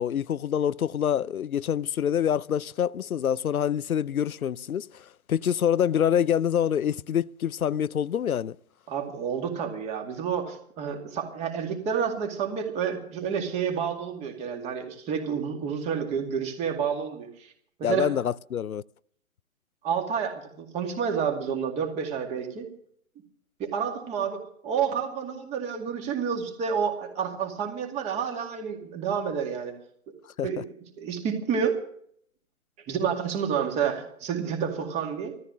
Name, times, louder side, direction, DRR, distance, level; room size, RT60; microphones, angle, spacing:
voice 1, 0.0-8.6 17.8-18.8 30.4-30.5, left 9 dB, 90° left, 0.6 m, -26 dB
voice 2, 8.9-17.5 17.8-18.1 19.8-22.7 23.6-29.7 30.4-30.6 31.0-31.8 32.9-35.3, right 7 dB, 15° right, 2.2 m, -29 dB
15.5 x 14.0 x 6.3 m
figure-of-eight pair, 140°, 41 cm